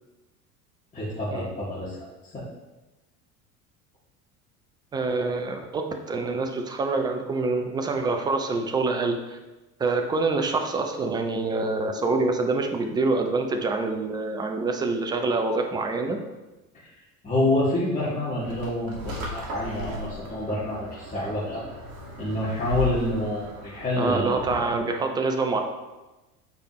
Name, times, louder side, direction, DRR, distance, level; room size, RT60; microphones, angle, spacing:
voice 1, 0.9-2.0 2.3-2.5 17.2-21.6 22.2-24.4, left 1 dB, 15° left, -9 dB, 1.7 m, -27 dB
voice 2, 4.9-9.4 9.8-16.2 24.0-25.6, right 3 dB, 10° right, 4 dB, 0.3 m, -26 dB
sound 1, 18.4-24.8, left 3 dB, 50° right, 1.7 m, -36 dB
8.0 x 4.9 x 3.0 m, 1.1 s
figure-of-eight pair, 70°, 47 cm